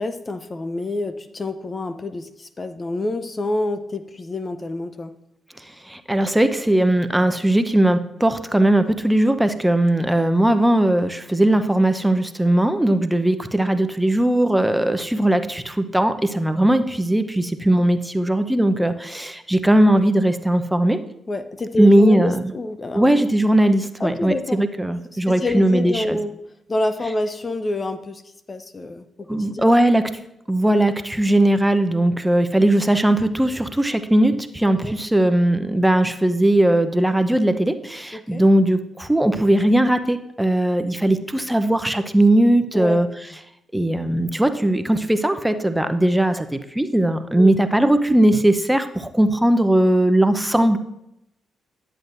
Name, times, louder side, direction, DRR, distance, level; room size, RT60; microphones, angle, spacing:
voice 1, 0.0-5.1 21.3-23.2 24.0-24.6 25.1-26.3 26.7-28.2 28.5-29.9 30.6-30.7 34.8-35.0 38.1-38.5 42.7-43.0 47.3-47.5, left 2 dB, 35° left, 10 dB, 0.6 m, -27 dB
voice 2, 5.9-21.0 21.8-22.4 22.9-26.2 29.3-30.1 30.5-43.1 43.7-50.8, right 1 dB, 10° right, 9 dB, 0.7 m, -19 dB
10.5 x 7.8 x 2.6 m, 0.81 s
hypercardioid pair, 40°, 0 cm